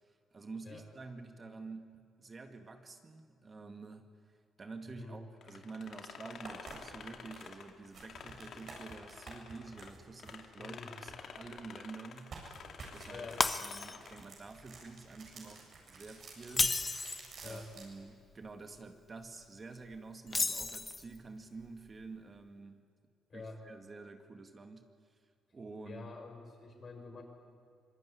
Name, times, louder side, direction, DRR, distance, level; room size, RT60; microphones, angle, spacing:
voice 1, 0.0-12.5 12.9-13.3 13.6-17.0 17.4-22.8 23.3-25.2 25.5-26.1, right 3 dB, 35° right, 6 dB, 2.0 m, -49 dB
sound 1, 5.4-9.9 10.2-14.3, left 6 dB, 60° left, 2.3 m, -50 dB
sound 2, 5.8-5.9 6.3-11.7 12.1-17.9, right 4 dB, 55° right, 7.8 m, -52 dB
voice 2, 10.6-10.9 13.1-13.4 17.4-17.7 23.3-23.6 25.8-27.2, left 3 dB, 45° left, 3 dB, 6.4 m, -47 dB
Shatter, 13.4-14.2 14.6-14.8 16.4-17.3 20.3-21.2, left 3 dB, 25° left, 1.2 m, -32 dB
25.5 x 21.0 x 9.9 m, 2.3 s
cardioid pair, 90°, 0 cm